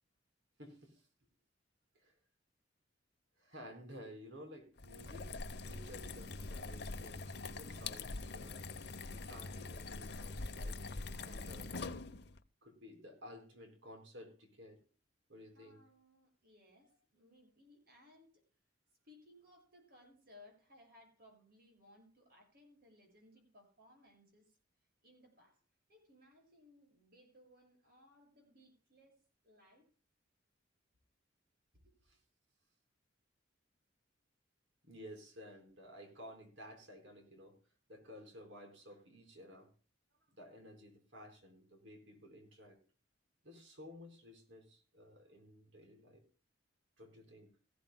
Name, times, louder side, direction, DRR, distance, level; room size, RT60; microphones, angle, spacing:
voice 1, 0.6-1.1 1.9-2.2 3.4-5.3 5.6-8.7 9.1-10.8 11.2-11.9 12.6-14.8 15.3-15.8 34.8-37.6 37.9-39.7 40.4-42.8 43.4-46.2 47.0-47.5, equal, 80° right, 5 dB, 4.3 m, -54 dB
sound 1, 4.8-12.4, left 3 dB, 60° left, 0.8 m, -44 dB
voice 2, 15.5-18.4 19.0-24.6 25.0-25.6 25.9-29.9 31.8-31.9, left 1 dB, 55° right, 2 dB, 7.2 m, -63 dB
18.5 x 15.5 x 2.2 m, 0.37 s
head